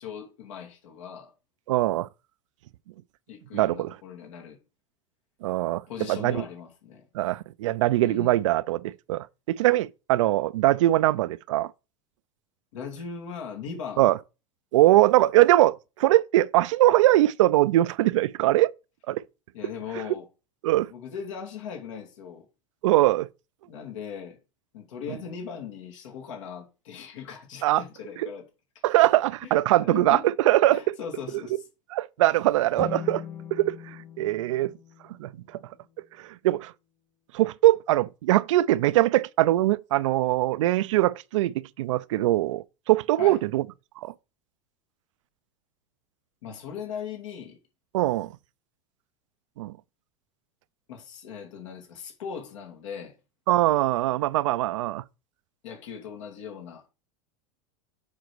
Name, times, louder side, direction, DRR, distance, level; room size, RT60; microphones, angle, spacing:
voice 1, 0.0-1.3 3.3-4.6 5.9-7.0 8.0-8.4 12.7-14.0 19.5-20.3 20.9-22.5 23.7-24.4 24.7-28.5 29.4-30.3 30.7-31.7 43.2-43.4 46.4-47.6 50.9-53.1 55.6-56.8, left 7 dB, 80° left, 2.5 m, -39 dB
voice 2, 1.7-2.1 3.5-3.9 5.4-5.8 6.1-6.4 7.1-11.7 14.0-14.2 14.7-18.7 19.1-19.2 20.6-20.9 22.8-23.3 27.6-27.8 28.2-28.3 28.8-31.0 31.9-33.2 33.5-34.7 35.2-35.6 36.2-36.7 37.3-43.6 44.0-44.1 47.9-48.3 49.6-49.8 53.5-55.0, right 16 dB, 85° right, 0.5 m, -22 dB
sound 1, 32.7-36.0, left 8 dB, 15° left, 0.5 m, -41 dB
7.3 x 4.1 x 6.1 m
supercardioid pair, 140°, 16 cm